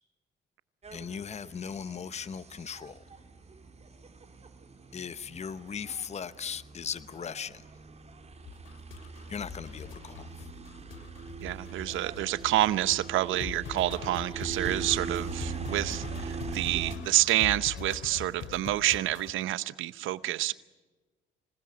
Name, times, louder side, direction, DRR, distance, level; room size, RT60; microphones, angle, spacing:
sound 1, 0.8-17.0, right 5 dB, 35° right, 3.6 m, -41 dB
voice 1, 0.9-3.0 4.9-7.7 9.3-10.5, left 7 dB, 35° left, 15 dB, 0.9 m, -38 dB
sound 2, 8.4-19.3, left 8 dB, 80° left, 2.7 m, -43 dB
voice 2, 11.4-20.5, right 15 dB, 85° right, 16 dB, 0.8 m, -28 dB
27.0 x 19.5 x 9.5 m, 1.2 s
cardioid pair, 90°, 20 cm